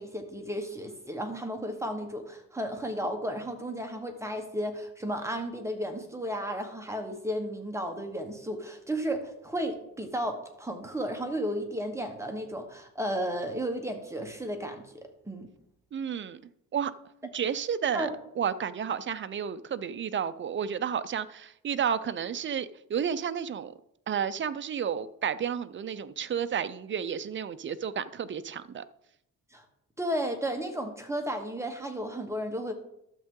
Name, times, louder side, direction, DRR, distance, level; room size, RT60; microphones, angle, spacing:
voice 1, 0.0-15.5 17.9-18.1 29.5-29.6 30.0-32.7, equal, 10° right, 1.1 m, -33 dB
voice 2, 15.9-16.4 16.7-16.9 17.3-18.1 18.4-23.7 24.1-28.8, right 8 dB, 35° right, 0.4 m, -31 dB
12.5 x 7.3 x 3.7 m
cardioid pair, 145°, 35 cm